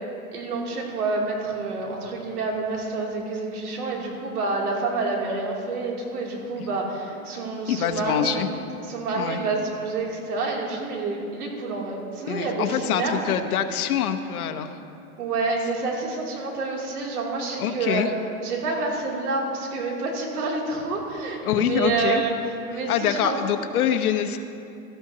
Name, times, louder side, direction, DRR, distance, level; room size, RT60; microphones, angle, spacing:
voice 1, 0.3-8.4 8.8-13.2 15.2-18.1 18.4-22.3 22.7-23.4, right 3 dB, 90° right, -2 dB, 3.0 m, -28 dB
voice 2, 7.7-8.5 9.2-9.4 12.3-14.7 17.6-18.1 21.4-22.2 22.9-24.4, left 9 dB, 80° left, 7 dB, 1.1 m, -25 dB
17.0 x 13.5 x 2.9 m, 2.6 s
supercardioid pair, 170°, 44 cm